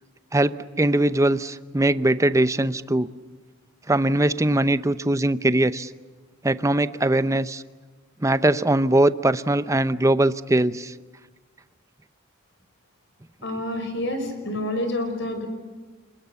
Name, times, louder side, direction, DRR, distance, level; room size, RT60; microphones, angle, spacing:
voice 1, 0.3-3.1 3.9-5.9 6.4-7.6 8.2-10.9, right 1 dB, 15° right, 14 dB, 0.7 m, -21 dB
voice 2, 13.4-15.5, left 1 dB, 60° left, 7 dB, 5.3 m, -28 dB
29.0 x 20.5 x 8.2 m, 1.3 s
head